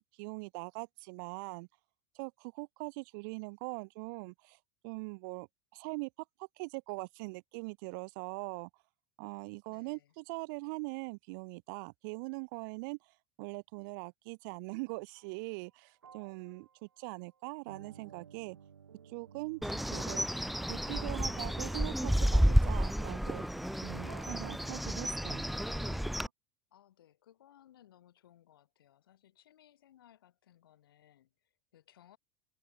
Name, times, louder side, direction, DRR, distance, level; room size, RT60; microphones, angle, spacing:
voice 1, 0.0-1.7 2.1-4.6 4.8-5.5 5.7-6.1 6.4-8.7 9.2-13.0 13.4-18.6 19.0-23.4 23.8-25.5, right 30 dB, 60° right, 2.1 m, -42 dB
voice 2, 9.7-10.1 26.7-32.2, left 11 dB, 75° left, 7.7 m, -63 dB
sound 1, 15.2-15.4 16.0-26.3, right 7 dB, 85° right, 3.0 m, -55 dB
Bird, 19.6-26.3, equal, ahead, 0.4 m, -31 dB
hypercardioid pair, 85°, 12 cm